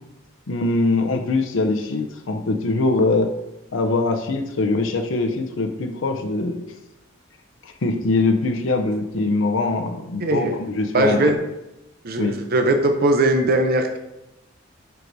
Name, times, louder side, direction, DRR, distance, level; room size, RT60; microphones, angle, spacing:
voice 1, 0.5-3.3 3.7-6.6 7.6-11.3 12.2-12.4, left 3 dB, 70° left, 5 dB, 0.6 m, -22 dB
voice 2, 10.2-10.6 10.9-11.4 12.0-14.0, right 2 dB, 50° right, 5 dB, 0.6 m, -19 dB
7.7 x 4.7 x 2.6 m, 0.92 s
head